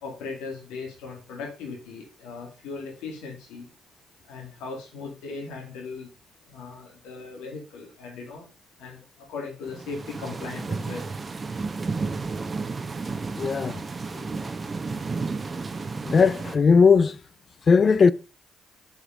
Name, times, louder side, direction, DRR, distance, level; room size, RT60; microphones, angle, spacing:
voice 1, 0.0-3.6 4.2-6.1 6.5-8.5 8.8-11.1, left 4 dB, 85° left, 2.3 m, -38 dB
sound 1, 9.7-16.6, right 4 dB, 35° right, 1.0 m, -32 dB
voice 2, 13.4-13.8 14.1-14.3 16.1-17.2 17.7-18.1, left 5 dB, 45° left, 0.4 m, -18 dB
6.7 x 4.9 x 5.2 m
supercardioid pair, 65°, 0 cm